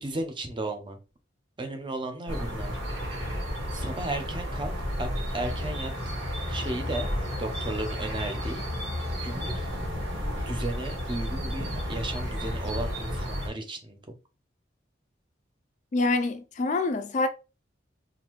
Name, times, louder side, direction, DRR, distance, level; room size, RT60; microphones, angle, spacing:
voice 1, 0.0-1.0 1.6-2.8 3.7-4.7 5.0-5.9 6.5-7.1 7.4-8.6 9.2-9.7 10.5-14.1, right 1 dB, 25° right, 0.6 m, -34 dB
sound 1, 2.3-13.5, equal, 75° right, 1.7 m, -32 dB
voice 2, 15.9-17.3, left 3 dB, 40° left, 0.3 m, -26 dB
3.8 x 2.6 x 3.0 m
head